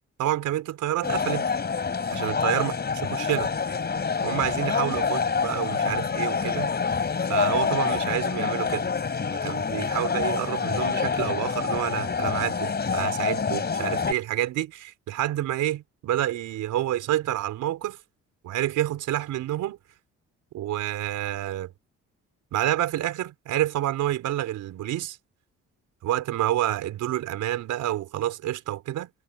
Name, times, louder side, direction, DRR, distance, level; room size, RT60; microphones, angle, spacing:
voice 1, 0.2-1.5 2.1-2.7 3.1-3.5 4.2-6.7 7.3-8.9 9.4-18.0 18.4-19.8 20.5-21.7 22.5-25.2 26.0-29.1, right 13 dB, 85° right, 4.2 m, -28 dB
sound 1, 1.0-14.1, left 5 dB, 35° left, 3.3 m, -27 dB
cardioid pair, 90°, 30 cm